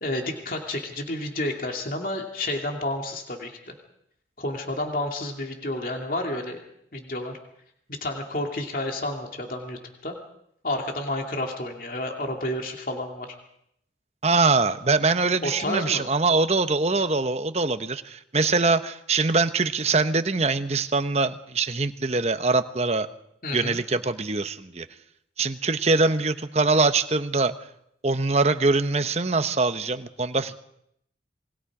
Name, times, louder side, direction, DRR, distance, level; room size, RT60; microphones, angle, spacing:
voice 1, 0.0-3.7 4.4-6.6 6.9-7.3 7.9-10.2 10.6-13.3 15.4-16.1 23.4-23.8, left 1 dB, 50° left, 2 dB, 2.7 m, -30 dB
voice 2, 14.2-23.1 23.5-24.9 25.4-27.6 28.0-30.6, right 3 dB, 35° right, 10 dB, 1.0 m, -23 dB
27.5 x 22.5 x 4.9 m, 0.74 s
head